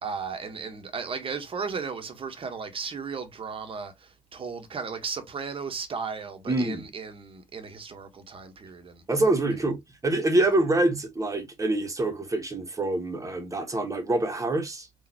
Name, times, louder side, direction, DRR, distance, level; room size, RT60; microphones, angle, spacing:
voice 1, 0.0-9.0 9.5-9.6, right 5 dB, 35° right, 1.2 m, -35 dB
voice 2, 6.5-6.9 9.1-14.9, right 2 dB, 20° right, 1.4 m, -26 dB
3.9 x 2.8 x 2.9 m
hypercardioid pair, 55°, 15 cm